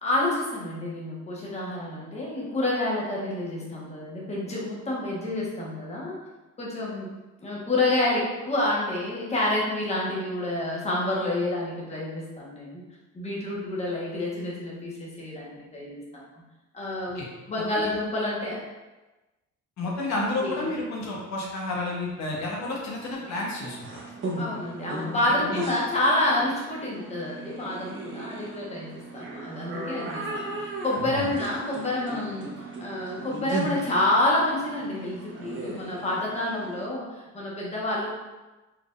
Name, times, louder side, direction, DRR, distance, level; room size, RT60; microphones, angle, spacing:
voice 1, 0.0-6.2 6.6-7.1 7.4-12.8 13.1-16.2 16.7-18.6 20.1-20.7 24.4-38.1, left 1 dB, 20° left, -5 dB, 1.1 m, -28 dB
voice 2, 19.8-23.8 25.2-25.6 31.0-31.3, left 2 dB, 65° left, -3 dB, 1.0 m, -31 dB
sound 1, 23.1-36.9, right 2 dB, 40° right, 0.9 m, -37 dB
4.6 x 3.5 x 2.4 m, 1.1 s
cardioid pair, 120°, 30 cm